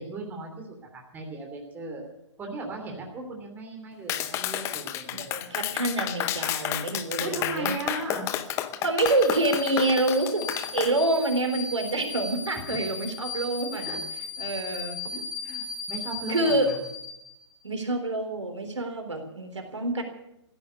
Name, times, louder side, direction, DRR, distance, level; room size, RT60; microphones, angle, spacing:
voice 1, 0.0-2.0 2.4-5.4 7.2-8.3 13.8-14.0 15.1-16.8, right 2 dB, 10° right, 1 dB, 3.0 m, -37 dB
Clapping, 4.1-10.9, left 12 dB, 20° left, 0.8 m, -31 dB
voice 2, 5.1-7.8 8.8-14.0 14.4-15.0 16.3-16.7 17.6-20.0, right 2 dB, 80° right, 5 dB, 3.7 m, -27 dB
sound 1, 9.1-17.5, left 4 dB, 45° left, 5.5 m, -37 dB
15.5 x 9.6 x 9.5 m, 0.85 s
figure-of-eight pair, 140°, 15 cm